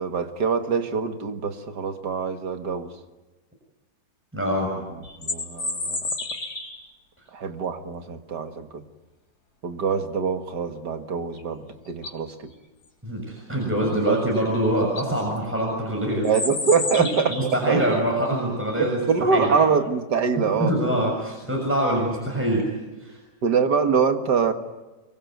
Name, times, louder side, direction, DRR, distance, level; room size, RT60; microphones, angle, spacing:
voice 1, 0.0-2.9 4.7-6.1 7.3-8.8 9.6-12.5 13.8-14.2 16.2-17.9 18.8-20.8 23.4-24.5, right 5 dB, 70° right, 7 dB, 2.4 m, -24 dB
voice 2, 4.3-4.7 13.0-16.3 17.3-19.0 19.3-19.6 20.6-22.7 23.0-23.2, right 1 dB, 5° right, -1 dB, 6.6 m, -24 dB
sound 1, 5.0-6.9 11.4-11.5 11.9-12.3 14.3-14.4 14.8-15.1 16.2-17.6, left 3 dB, 60° left, 4.0 m, -30 dB
25.0 x 24.0 x 9.4 m, 1.1 s
omnidirectional pair, 1.9 m